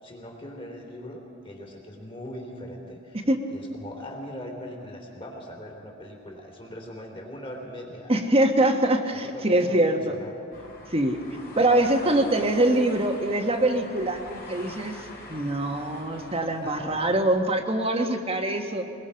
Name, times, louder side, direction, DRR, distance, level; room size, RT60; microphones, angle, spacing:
voice 1, 0.0-8.2 9.2-10.3 12.1-12.3 16.6-17.0, equal, 25° left, 0 dB, 3.5 m, -40 dB
voice 2, 8.1-10.1 10.9-11.2 11.6-15.0 15.3-18.8, right 1 dB, 30° right, 4 dB, 1.4 m, -23 dB
sound 1, 10.5-17.3, left 2 dB, 45° left, 3.9 m, -44 dB
22.0 x 21.5 x 5.7 m, 2.6 s
head